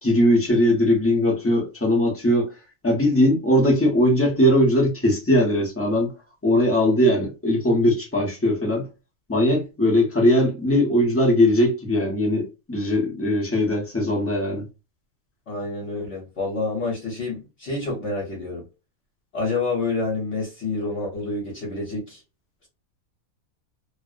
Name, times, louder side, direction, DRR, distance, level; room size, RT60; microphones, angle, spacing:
voice 1, 0.0-2.5 2.8-6.1 6.4-8.9 9.3-14.7, left 1 dB, 15° left, 0.5 m, -20 dB
voice 2, 15.5-18.6 19.3-22.2, left 3 dB, 60° left, 1.1 m, -28 dB
2.6 x 2.0 x 2.4 m
omnidirectional pair, 1.5 m